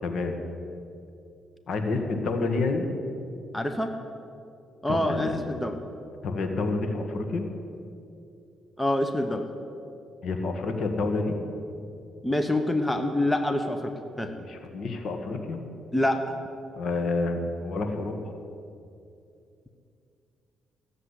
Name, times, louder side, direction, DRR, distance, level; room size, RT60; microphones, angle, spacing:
voice 1, 0.0-0.4 1.7-2.9 4.9-5.3 6.2-7.4 10.2-11.4 14.4-15.6 16.7-18.3, left 3 dB, 60° left, 5 dB, 1.8 m, -29 dB
voice 2, 3.5-3.9 4.8-5.8 8.8-9.5 12.2-14.3 15.9-16.3, left 1 dB, 10° left, 6 dB, 1.1 m, -26 dB
15.0 x 7.6 x 9.9 m, 2.6 s
cardioid pair, 90°, 0 cm